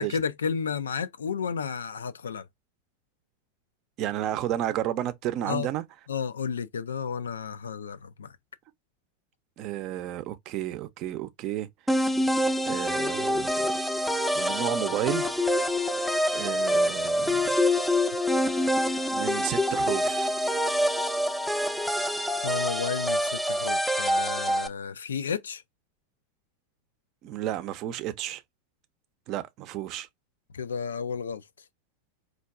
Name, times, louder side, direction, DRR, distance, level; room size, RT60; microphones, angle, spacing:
voice 1, 0.0-2.5 5.5-5.7 6.1-8.3 22.4-25.6 30.5-31.4, left 6 dB, 85° left, 0.3 m, -32 dB
voice 2, 4.0-5.8 9.6-11.7 12.6-13.5 14.3-15.3 16.3-17.6 19.1-20.3 24.5-24.6 27.2-28.4 29.3-30.1, right 12 dB, 50° right, 0.5 m, -32 dB
sound 1, 11.9-24.7, equal, ahead, 0.5 m, -26 dB
4.4 x 2.4 x 2.4 m
hypercardioid pair, 95°, 0 cm